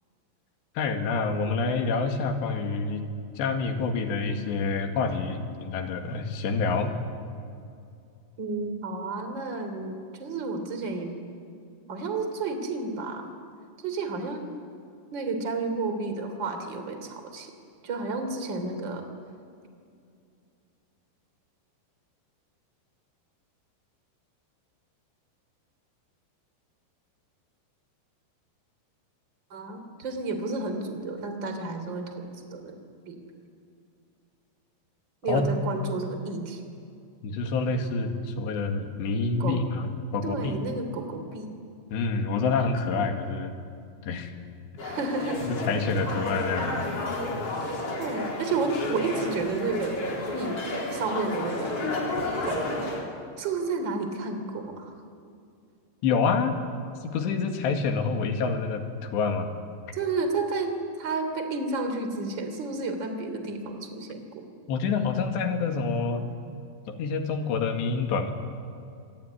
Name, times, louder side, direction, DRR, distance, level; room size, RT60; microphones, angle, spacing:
voice 1, 0.8-3.0 3.4-6.9 35.3-35.5 37.2-40.5 41.9-43.5 44.0-44.3 45.5-46.8 56.0-56.5 57.0-58.8 59.1-59.5 64.7-66.3 66.9-68.3, left 4 dB, 75° left, 5 dB, 4.2 m, -27 dB
voice 2, 8.4-11.1 11.9-13.3 13.8-14.4 15.1-17.5 17.8-19.0 29.5-32.7 33.1-33.2 35.2-36.6 39.4-39.6 40.2-41.5 44.8-45.4 48.0-50.0 50.3-50.6 50.9-51.7 52.4-52.6 53.4-54.9 59.9-64.3, right 3 dB, 30° right, 6 dB, 3.0 m, -31 dB
sound 1, 44.8-53.1, left 2 dB, 35° left, 4.2 m, -31 dB
26.5 x 22.5 x 9.9 m, 2.4 s
omnidirectional pair, 5.1 m